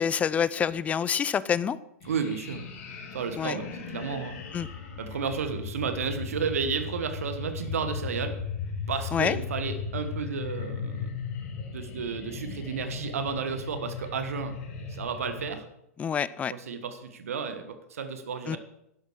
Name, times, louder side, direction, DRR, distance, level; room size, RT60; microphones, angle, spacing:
voice 1, 0.0-1.8 3.4-3.6 4.5-4.7 9.1-9.4 16.0-16.5 18.5-18.6, left 7 dB, 15° left, 18 dB, 0.5 m, -27 dB
sound 1, 2.0-15.5, left 5 dB, 45° left, 3.1 m, -37 dB
voice 2, 2.0-2.7 3.1-4.4 5.0-8.4 8.9-11.1 11.7-14.5 14.9-15.6 16.5-18.6, right 6 dB, 65° right, 9 dB, 1.5 m, -32 dB
11.5 x 11.5 x 4.8 m, 0.79 s
figure-of-eight pair, 105°, 8 cm